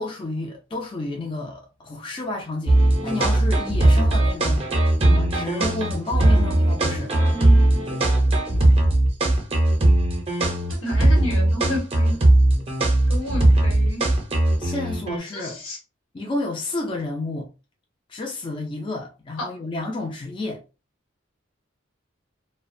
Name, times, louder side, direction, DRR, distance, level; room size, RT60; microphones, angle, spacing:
voice 1, 0.0-4.7 5.0-7.1 14.6-15.6 16.1-17.5 18.1-20.6, left 2 dB, 25° left, 0.4 m, -30 dB
sound 1, 2.7-15.2, right 1 dB, 30° right, 0.5 m, -19 dB
voice 2, 7.3-8.0 10.8-12.2 13.1-14.0 15.3-15.8 19.4-19.5, left 1 dB, 90° left, 1.0 m, -31 dB
2.4 x 2.1 x 2.5 m
head